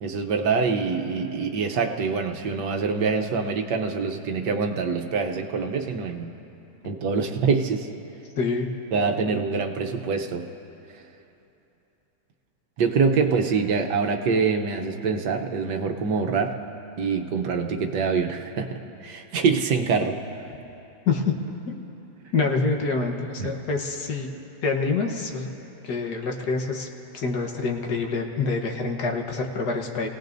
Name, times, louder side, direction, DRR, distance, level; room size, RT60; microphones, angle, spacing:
voice 1, 0.0-6.3 6.8-7.9 8.9-10.5 12.8-16.5 17.0-20.2 23.4-23.5, right 5 dB, 80° right, 3 dB, 1.5 m, -25 dB
voice 2, 8.4-8.7 21.1-21.3 21.7-21.8 22.3-24.3 24.6-25.5 25.8-26.9 27.1-30.1, left 4 dB, 70° left, 1 dB, 1.8 m, -26 dB
28.5 x 17.5 x 2.6 m, 2.9 s
omnidirectional pair, 1.8 m